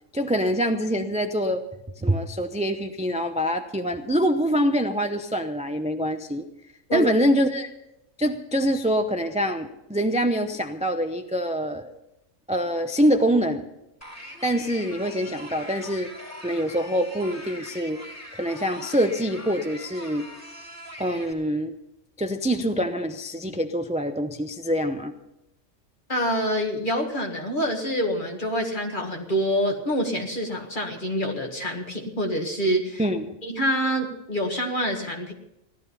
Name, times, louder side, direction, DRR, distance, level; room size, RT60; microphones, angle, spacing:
voice 1, 0.1-1.6 2.0-6.5 6.9-7.7 8.2-12.0 12.5-13.6 14.4-16.1 16.4-18.0 18.3-20.3 21.0-21.7 22.2-25.1 33.0-33.4, equal, 5° right, 6 dB, 0.5 m, -25 dB
sound 1, 14.0-21.3, equal, 10° left, 2.3 m, -42 dB
voice 2, 26.1-33.0 33.4-35.3, equal, 40° left, 2 dB, 2.0 m, -26 dB
16.0 x 12.0 x 5.6 m, 0.85 s
omnidirectional pair, 1.3 m